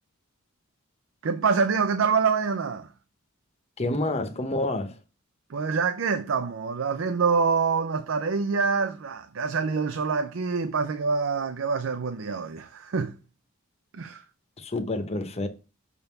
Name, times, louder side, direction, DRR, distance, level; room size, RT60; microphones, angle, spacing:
voice 1, 1.2-2.9 5.5-13.2 13.9-14.2, right 5 dB, 65° right, 0.5 m, -26 dB
voice 2, 3.8-4.9 14.6-15.5, left 2 dB, 30° left, 0.8 m, -28 dB
6.6 x 3.6 x 5.8 m
head